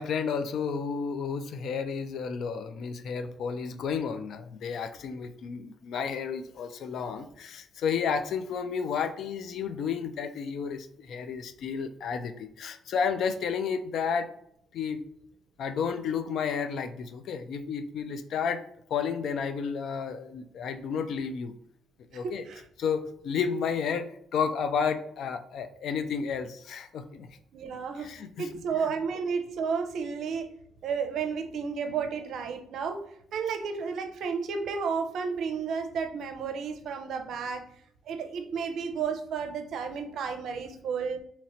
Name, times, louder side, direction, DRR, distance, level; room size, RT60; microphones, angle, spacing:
voice 1, 0.0-14.3 14.7-15.0 15.6-18.6 18.9-21.5 22.1-22.4 22.8-24.1 24.3-27.3 28.0-28.4, left 6 dB, 70° left, 9 dB, 0.4 m, -31 dB
voice 2, 22.1-22.7 27.5-28.1 28.4-30.5 30.8-33.1 33.3-37.6 38.1-41.2, right 6 dB, 70° right, 7 dB, 0.5 m, -32 dB
2.9 x 2.8 x 4.2 m, 0.69 s
cardioid pair, 90°, 0 cm